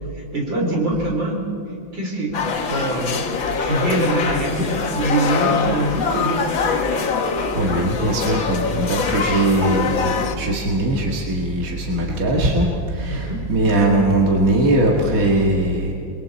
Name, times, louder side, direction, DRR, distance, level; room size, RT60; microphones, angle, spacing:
voice 1, 0.1-1.5 1.9-6.6 13.1-13.5, right 1 dB, 70° right, -1 dB, 5.0 m, -24 dB
sound 1, 2.3-10.4, left 5 dB, 90° left, 2.2 m, -23 dB
voice 2, 7.5-12.7 12.9-15.9, right 1 dB, 45° right, -1 dB, 2.4 m, -20 dB
30.0 x 22.0 x 4.4 m, 2.6 s
omnidirectional pair, 2.1 m